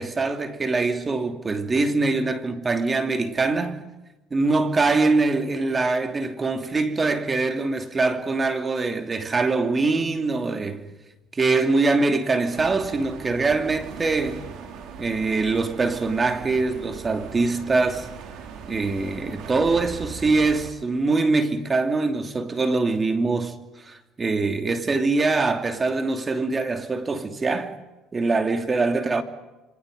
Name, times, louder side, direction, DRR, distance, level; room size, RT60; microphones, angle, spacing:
voice 1, 0.0-3.8 4.3-10.8 11.3-14.4 15.0-18.1 18.7-23.6 23.8-27.7 28.1-29.2, right 3 dB, 25° right, 2.6 m, -23 dB
sound 1, 12.5-20.7, right 6 dB, 65° right, 4.4 m, -39 dB
27.5 x 25.5 x 5.3 m
supercardioid pair, 100°, 0 cm